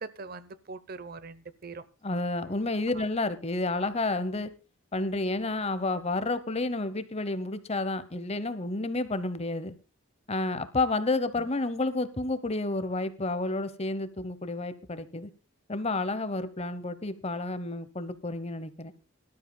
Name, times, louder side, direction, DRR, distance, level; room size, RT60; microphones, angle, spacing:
voice 1, 0.0-1.8 2.9-3.0 11.3-11.5, right 4 dB, 45° right, 16 dB, 0.8 m, -42 dB
voice 2, 2.0-4.5 4.9-9.7 10.3-15.3 15.7-18.9, left 2 dB, 30° left, 14 dB, 1.0 m, -30 dB
23.5 x 12.5 x 2.2 m, 0.30 s
head